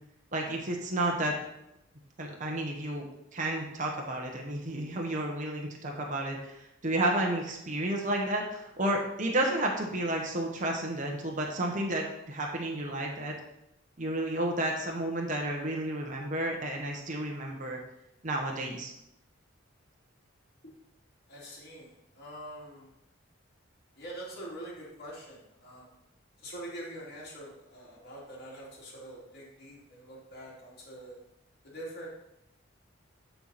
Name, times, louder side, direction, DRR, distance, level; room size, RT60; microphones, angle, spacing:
voice 1, 0.3-1.3 2.2-3.0 3.3-6.6 6.8-13.4 14.0-17.8 18.2-18.9, right 1 dB, 40° right, 0 dB, 1.1 m, -31 dB
voice 2, 21.3-22.9 24.0-25.9 26.4-31.1 31.6-32.1, right 1 dB, 50° left, -5 dB, 2.8 m, -44 dB
11.5 x 4.6 x 4.1 m, 0.85 s
head